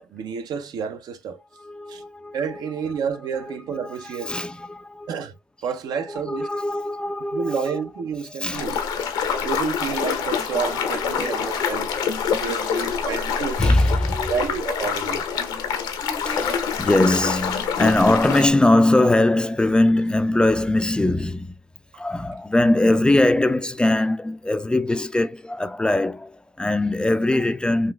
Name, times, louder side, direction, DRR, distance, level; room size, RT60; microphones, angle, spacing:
voice 1, 0.0-1.4 1.9-2.0 2.3-4.4 5.1-5.3 5.6-6.5 7.3-8.8 9.4-11.9 12.3-13.6 14.3-15.3 21.9-22.0, right 6 dB, 65° right, 0.6 m, -29 dB
voice 2, 1.6-2.6 3.4-5.2 6.1-7.8 8.4-8.7 8.9-9.1 10.0-10.1 10.7-12.4 13.4-14.5 16.0-21.6 22.0-27.9, left 1 dB, 10° left, 0.3 m, -22 dB
sound 1, 8.5-18.5, left 7 dB, 75° left, 0.7 m, -26 dB
3.8 x 2.5 x 2.2 m
supercardioid pair, 70°, 7 cm